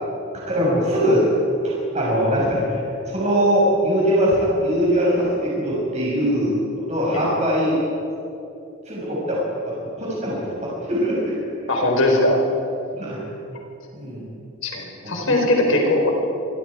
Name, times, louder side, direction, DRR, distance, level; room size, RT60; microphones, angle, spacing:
voice 1, 0.5-1.3 1.6-2.8 3.1-7.8 8.9-9.4 9.7-11.3 12.9-13.2 13.9-14.2 15.0-15.3, equal, 35° right, -5 dB, 5.8 m, -21 dB
voice 2, 11.7-12.4 14.6-16.1, left 1 dB, 80° left, 1 dB, 4.4 m, -20 dB
26.0 x 23.0 x 4.9 m, 2.8 s
head